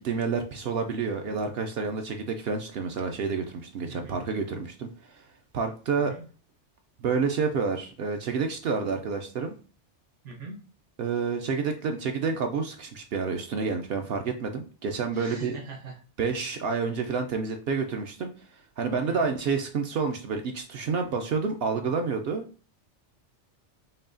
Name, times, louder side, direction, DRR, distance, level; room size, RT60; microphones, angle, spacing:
voice 1, 0.0-4.9 5.2-5.3 5.5-6.1 7.0-9.6 11.0-15.6 16.2-18.3 18.8-22.5, right 5 dB, 65° right, 5 dB, 0.7 m, -29 dB
voice 2, 3.9-4.2 5.9-6.2 10.2-10.5 15.1-16.0 19.1-19.3, right 4 dB, 85° right, -1 dB, 1.3 m, -42 dB
5.4 x 2.3 x 2.5 m, 0.37 s
omnidirectional pair, 1.2 m